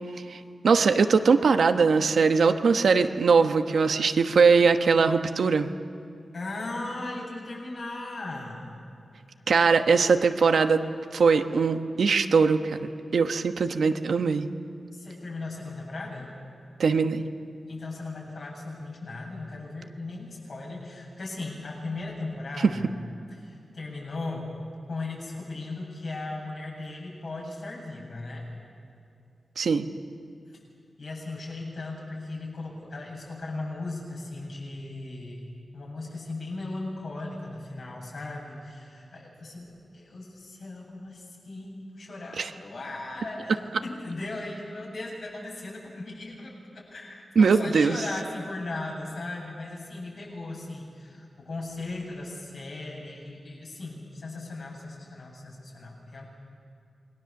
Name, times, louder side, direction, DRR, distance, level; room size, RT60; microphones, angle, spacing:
voice 1, 0.3-5.7 9.5-10.8 11.1-14.5 16.8-17.2 22.6-22.7 29.6-29.9 42.4-42.5 47.3-48.0, right 5 dB, 85° right, 7 dB, 1.1 m, -21 dB
voice 2, 6.3-8.6 14.9-16.3 17.7-22.9 23.4-24.5 24.9-28.4 31.0-35.4 35.7-46.5 46.9-56.3, left 2 dB, 65° left, -2 dB, 7.8 m, -37 dB
28.0 x 21.0 x 7.2 m, 2.5 s
wide cardioid pair, 120°, 0 cm